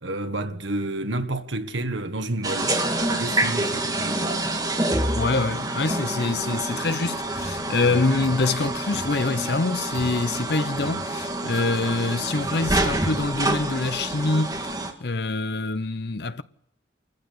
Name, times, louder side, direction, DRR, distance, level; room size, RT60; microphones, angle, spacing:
voice 1, 0.0-2.8 3.1-4.5, right 2 dB, 80° right, 1.5 m, -30 dB
sound 1, 2.4-14.9, right 1 dB, 20° right, 2.0 m, -27 dB
voice 2, 5.1-14.6 15.0-16.4, left 3 dB, 60° left, 0.8 m, -25 dB
sound 2, 6.9-7.3 8.2-8.6 9.9-10.3 11.5-11.8, equal, 5° left, 5.4 m, -49 dB
27.0 x 15.0 x 6.8 m
head